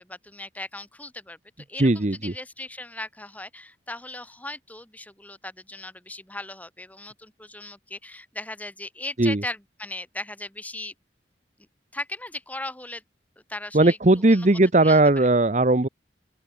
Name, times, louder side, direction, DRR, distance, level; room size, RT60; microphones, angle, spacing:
voice 1, 0.0-10.9 11.9-13.0 13.5-14.0 14.3-14.5 14.8-15.3, left 2 dB, 10° left, 3.3 m, -38 dB
voice 2, 1.8-2.3 9.2-9.4 13.7-15.9, right 2 dB, 40° right, 0.9 m, -18 dB
open air
head